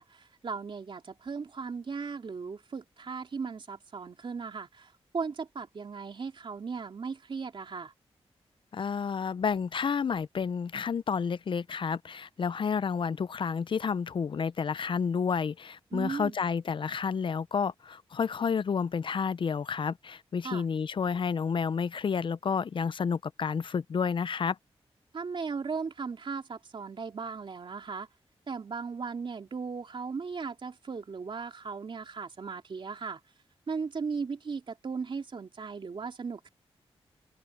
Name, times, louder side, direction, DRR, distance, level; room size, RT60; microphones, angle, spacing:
voice 1, 0.0-7.9 15.9-16.4 20.4-20.6 25.1-28.1 28.5-33.2 33.7-36.5, right 5 dB, 55° right, 3.1 m, -37 dB
voice 2, 8.7-24.6, left 6 dB, 55° left, 0.5 m, -30 dB
wide cardioid pair, 90°, 10 cm